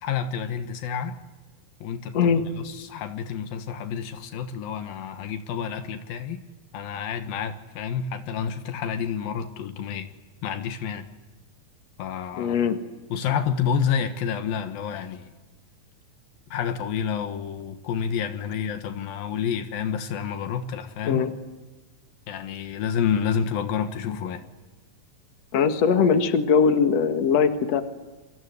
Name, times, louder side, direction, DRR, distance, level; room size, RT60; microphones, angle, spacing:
voice 1, 0.0-1.1 1.8-2.3 2.6-6.4 6.7-10.1 10.4-11.1 12.0-12.6 13.1-15.3 16.5-21.2 22.3-24.4, left 7 dB, 85° left, 8 dB, 3.1 m, -29 dB
voice 2, 12.4-12.8 21.0-21.3 25.5-27.8, left 6 dB, 55° left, 7 dB, 2.6 m, -21 dB
28.5 x 24.5 x 8.2 m, 1.2 s
omnidirectional pair, 4.1 m